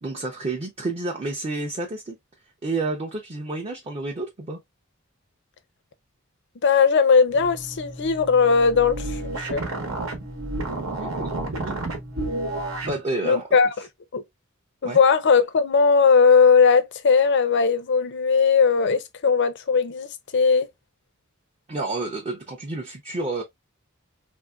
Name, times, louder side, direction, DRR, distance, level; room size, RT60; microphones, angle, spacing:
voice 1, 0.0-2.2 2.6-4.6 11.0-11.8 12.8-13.6 14.8-15.0 21.7-23.4, right 2 dB, 30° right, 0.5 m, -30 dB
voice 2, 6.6-9.6 13.2-13.7 14.1-14.2 14.8-20.7, left 5 dB, 60° left, 0.5 m, -19 dB
sound 1, 7.3-13.0, right 2 dB, 90° right, 1.0 m, -31 dB
3.3 x 2.6 x 2.2 m
head